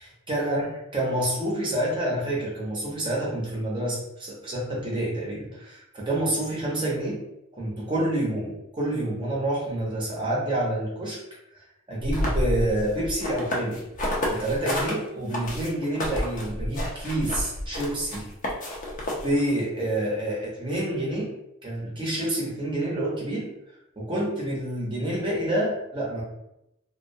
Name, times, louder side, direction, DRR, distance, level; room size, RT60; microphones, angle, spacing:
voice 1, 0.0-7.2 7.6-11.2 11.9-13.8 14.3-18.3 19.0-21.3 21.6-23.5 24.0-26.2, right 1 dB, 25° right, -5 dB, 0.7 m, -28 dB
sound 1, 12.0-14.9 15.3-19.5, left 1 dB, 35° left, 0.5 m, -29 dB
2.3 x 2.1 x 2.6 m, 0.85 s
head